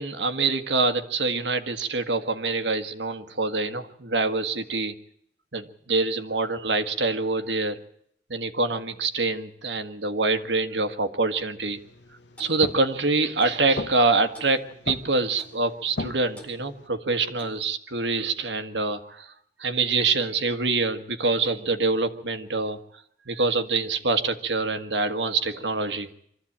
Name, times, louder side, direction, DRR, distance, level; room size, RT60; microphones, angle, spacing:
voice 1, 0.0-4.9 5.5-7.8 8.3-11.8 12.4-19.3 19.6-22.8 23.3-26.1, right 3 dB, 85° right, 9 dB, 1.7 m, -25 dB
sound 1, 11.7-16.9, left 2 dB, 85° left, 1.3 m, -39 dB
Clock, 12.4-12.6 13.4-13.6 14.3-14.6 15.4-15.6 16.4-16.6 17.4-17.6, equal, 10° left, 4.6 m, -48 dB
24.5 x 14.0 x 8.8 m, 0.70 s
head